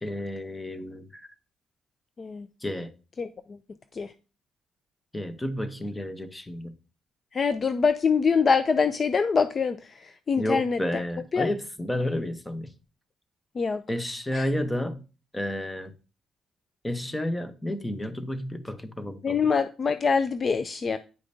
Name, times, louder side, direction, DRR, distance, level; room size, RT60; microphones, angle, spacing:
voice 1, 0.0-1.3 2.6-2.9 5.1-6.7 10.4-12.7 13.9-15.0 15.3-15.9 16.8-19.4, left 1 dB, 15° left, 0.9 m, -31 dB
voice 2, 7.3-9.8 10.0-11.0 11.3-11.5 13.6-13.8 14.3-14.5 19.2-21.0, left 5 dB, 40° left, 0.4 m, -24 dB
9.5 x 5.0 x 2.7 m
cardioid pair, 90°, 0 cm